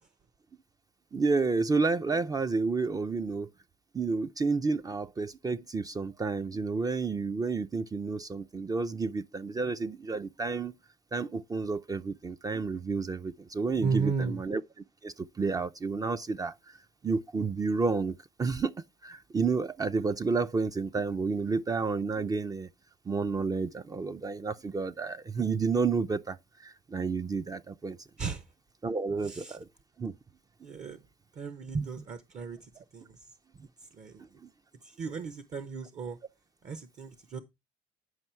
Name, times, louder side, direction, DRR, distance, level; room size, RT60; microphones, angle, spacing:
voice 1, 1.1-3.5 3.9-10.7 11.1-14.6 15.0-16.8 17.0-18.1 18.4-22.7 23.1-28.1 28.8-29.7 30.0-30.1 31.7-31.9 34.4-34.5, right 4 dB, 20° right, 0.5 m, -30 dB
voice 2, 13.8-14.4 28.2-28.4 29.2-29.6 30.6-31.0 31.3-33.3 34.0-34.2 34.8-36.2 36.6-37.4, right 5 dB, 45° right, 0.9 m, -35 dB
9.6 x 5.4 x 4.4 m
cardioid pair, 110°, 17 cm